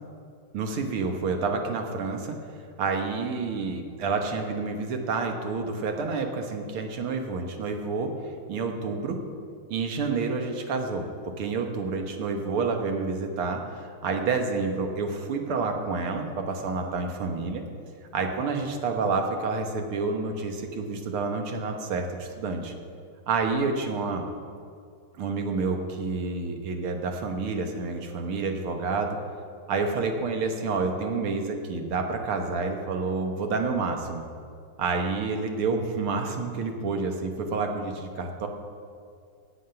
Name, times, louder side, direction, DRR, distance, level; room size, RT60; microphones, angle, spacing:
voice 1, 0.5-2.4 2.8-8.1 8.5-9.2 9.7-11.1 11.4-17.6 18.1-22.7 23.3-24.2 25.2-29.2 29.7-34.2 34.8-38.5, right 4 dB, 90° right, 4 dB, 2.1 m, -29 dB
17.5 x 7.4 x 5.8 m, 2.3 s
omnidirectional pair, 2.3 m